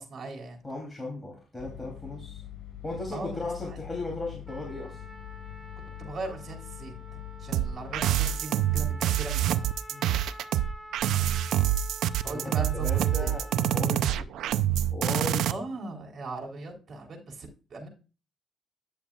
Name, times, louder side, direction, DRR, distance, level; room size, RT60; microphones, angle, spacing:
voice 1, 0.0-0.6 3.1-3.8 6.0-6.9 7.4-9.7 12.2-13.4 15.5-17.9, right 2 dB, 50° right, 1 dB, 3.5 m, -39 dB
voice 2, 0.6-2.4 2.8-5.0 9.9-10.0 12.2-13.4 13.7-14.6 14.9-15.6, left 2 dB, 10° left, -2 dB, 3.1 m, -37 dB
sound 1, 1.6-8.2, left 12 dB, 60° left, 4.8 m, -43 dB
Trumpet, 4.5-14.0, equal, 15° right, 1.7 m, -47 dB
sound 2, 7.5-15.5, right 11 dB, 80° right, 0.5 m, -26 dB
10.0 x 7.1 x 2.4 m, 0.33 s
cardioid pair, 90°, 0 cm